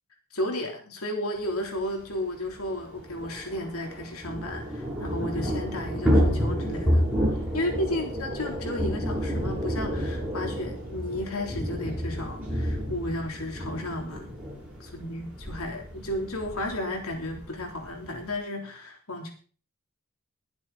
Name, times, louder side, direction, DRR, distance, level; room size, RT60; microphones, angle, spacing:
voice 1, 0.3-7.1 7.5-14.3 14.8-19.3, left 1 dB, 80° left, 2 dB, 3.5 m, -33 dB
Thunder / Rain, 1.8-1.9 2.1-2.2 2.5-18.4, equal, 5° right, 6.8 m, -30 dB
22.0 x 7.5 x 4.1 m, 0.41 s
head